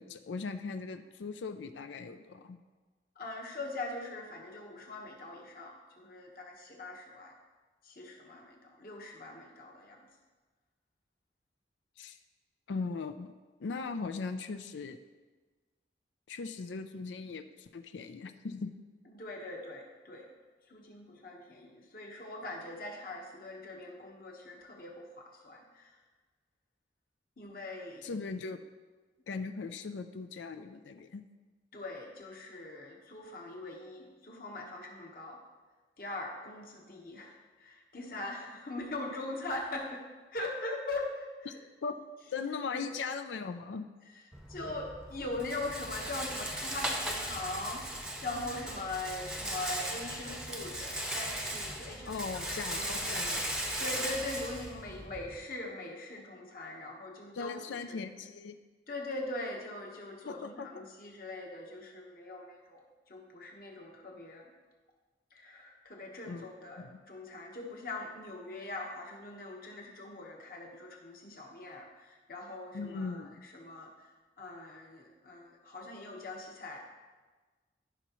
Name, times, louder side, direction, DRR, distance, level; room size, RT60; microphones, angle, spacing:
voice 1, 0.0-2.6 12.0-12.2 12.7-13.3 13.6-15.0 16.3-18.7 28.0-28.6 29.3-31.2 41.5-41.6 41.8-41.9 42.3-43.9 52.0-53.4 57.4-58.5 60.3-60.7 66.3-66.5 66.8-67.0 72.7-73.4, left 4 dB, 85° left, 8 dB, 0.4 m, -39 dB
voice 2, 3.1-7.3 7.8-10.1 19.1-20.3 20.7-26.0 27.4-28.2 31.7-35.4 36.0-40.0 40.3-41.6 42.7-42.9 44.1-47.9 48.2-53.5 53.8-57.6 57.9-58.0 58.9-64.5 65.3-76.8, left 2 dB, 50° left, 0 dB, 1.3 m, -42 dB
Rattle, 44.3-55.4, right 1 dB, 5° right, 0.7 m, -37 dB
13.5 x 5.7 x 3.1 m, 1.3 s
head